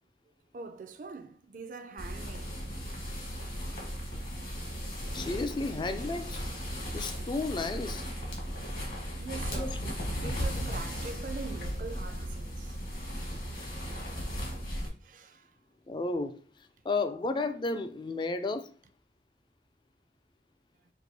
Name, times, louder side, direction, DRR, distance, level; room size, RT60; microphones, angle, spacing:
voice 1, 0.5-2.6 9.2-9.8 10.2-12.8 14.8-15.5, right 4 dB, 45° right, 0.4 m, -43 dB
sound 1, 2.0-14.9, equal, 50° left, 1.3 m, -36 dB
voice 2, 5.1-6.4 6.9-8.1 9.6-9.8 15.9-16.4 16.8-18.7, left 3 dB, 25° left, 0.3 m, -32 dB
6.0 x 2.6 x 2.7 m
head